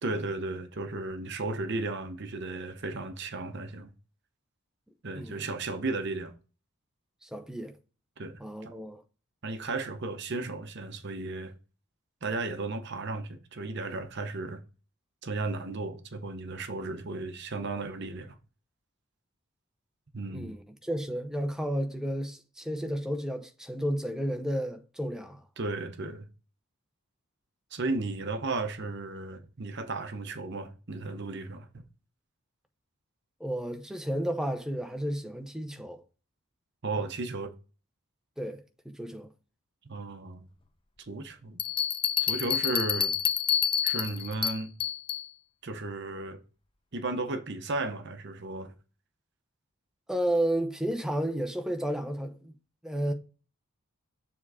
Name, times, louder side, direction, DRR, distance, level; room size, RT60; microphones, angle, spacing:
voice 1, 0.0-3.9 5.0-6.3 8.2-8.7 9.4-11.5 12.2-14.6 15.2-18.3 20.1-20.5 25.6-26.2 27.7-31.7 36.8-37.5 39.8-40.5 41.0-41.6 42.2-43.1 43.8-44.7 45.6-46.4 46.9-48.7, right 3 dB, 50° right, 0.8 m, -34 dB
voice 2, 5.1-5.5 7.2-7.7 8.4-9.0 20.3-25.4 33.4-36.0 38.4-39.3 50.1-52.5 52.8-53.1, right 1 dB, 5° right, 0.8 m, -32 dB
Bell, 41.6-45.3, left 9 dB, 25° left, 0.6 m, -28 dB
7.1 x 3.7 x 4.9 m
head